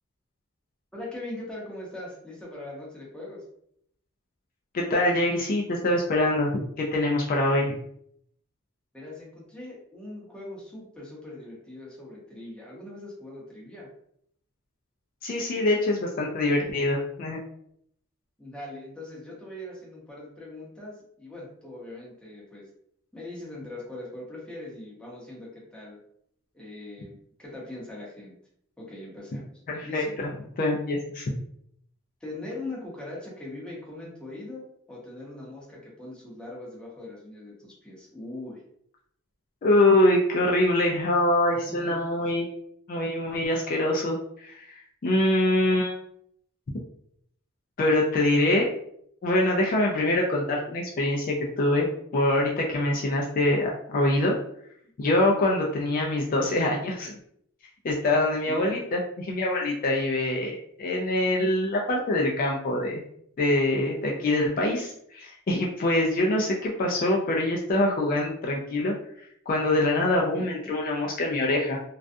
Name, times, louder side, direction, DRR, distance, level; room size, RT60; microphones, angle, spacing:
voice 1, 0.9-3.4 8.9-13.9 18.4-22.7 23.1-26.0 26.5-28.3 28.8-29.5 29.8-30.1 32.2-38.6 41.5-42.3 58.5-58.8 70.3-70.5, left 2 dB, 5° left, -5 dB, 0.7 m, -41 dB
voice 2, 4.7-6.5 6.8-7.7 15.2-17.4 29.7-30.3 30.6-31.4 39.6-42.5 42.9-45.9 47.8-48.7 49.2-54.4 55.0-57.1 57.8-63.0 63.4-71.8, left 1 dB, 45° left, -1 dB, 0.3 m, -24 dB
2.3 x 2.2 x 2.5 m, 0.70 s
head